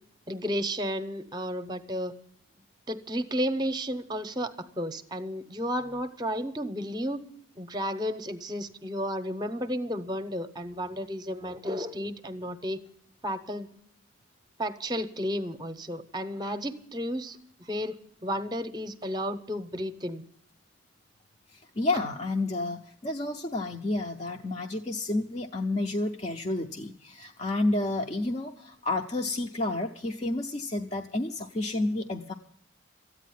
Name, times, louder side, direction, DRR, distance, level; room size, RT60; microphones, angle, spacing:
voice 1, 0.3-2.1 2.9-7.2 7.6-12.8 13.2-13.7 14.6-20.2, equal, 20° right, 11 dB, 0.8 m, -32 dB
voice 2, 21.5-32.3, left 2 dB, 30° left, 2 dB, 0.6 m, -30 dB
14.0 x 9.2 x 9.3 m, 0.66 s
head